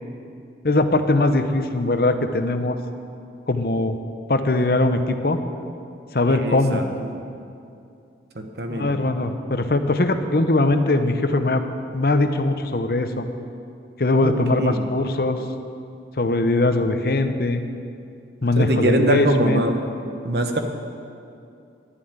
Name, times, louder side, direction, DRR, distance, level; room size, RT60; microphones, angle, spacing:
voice 1, 0.6-2.8 3.5-4.0 4.3-5.4 6.1-6.8 8.7-11.6 11.9-13.2 14.0-15.4 16.2-17.6 18.4-19.6, left 2 dB, 55° left, 8 dB, 0.8 m, -21 dB
voice 2, 6.3-7.1 8.3-8.9 14.1-14.9 18.6-19.8 20.2-20.6, right 1 dB, 65° right, 5 dB, 1.1 m, -23 dB
11.0 x 7.2 x 9.4 m, 2.5 s
head